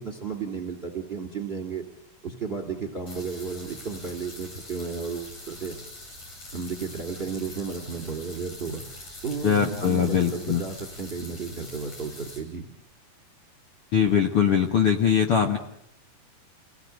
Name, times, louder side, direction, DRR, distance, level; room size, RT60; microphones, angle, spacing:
voice 1, 0.0-1.8 2.2-5.8 6.5-8.9 9.2-12.7, right 5 dB, 15° right, 7 dB, 2.6 m, -33 dB
sound 1, 3.1-12.4, left 1 dB, 45° left, 7.1 m, -44 dB
voice 2, 9.4-10.6 13.9-15.6, left 8 dB, 65° left, 4 dB, 1.4 m, -21 dB
28.0 x 19.0 x 9.2 m, 0.77 s
omnidirectional pair, 4.7 m